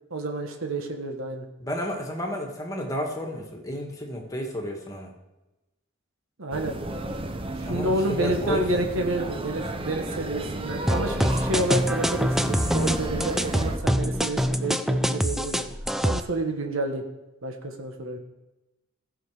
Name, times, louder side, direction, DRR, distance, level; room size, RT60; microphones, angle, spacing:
voice 1, 0.1-1.5 6.4-6.7 7.6-15.6 16.0-17.0 17.4-18.2, right 1 dB, 70° right, 4 dB, 1.3 m, -29 dB
voice 2, 1.6-5.1 7.6-8.9, left 1 dB, 15° left, 1 dB, 1.6 m, -31 dB
sound 1, 6.5-13.8, right 1 dB, 25° right, 0.7 m, -32 dB
sound 2, 10.9-16.2, equal, ahead, 0.3 m, -25 dB
15.5 x 6.4 x 4.9 m, 1.0 s
head